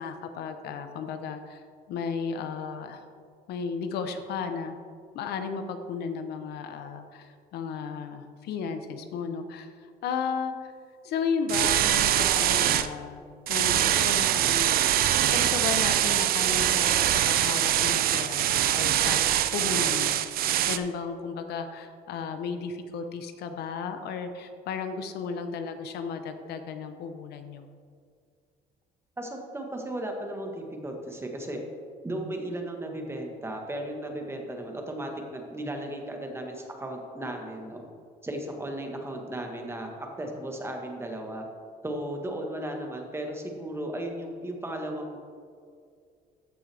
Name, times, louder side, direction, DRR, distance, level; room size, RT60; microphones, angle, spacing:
voice 1, 0.0-3.0 3.5-4.8 5.1-10.7 11.0-13.2 13.5-27.7, left 5 dB, 75° left, 7 dB, 0.8 m, -34 dB
sound 1, 11.5-12.9 13.5-20.8, right 12 dB, 60° right, 0.5 m, -23 dB
voice 2, 29.2-31.6 32.0-37.8 38.2-41.4 41.8-45.2, right 1 dB, 15° right, 2 dB, 1.4 m, -35 dB
14.0 x 6.1 x 3.4 m, 2.2 s
cardioid pair, 110°, 17 cm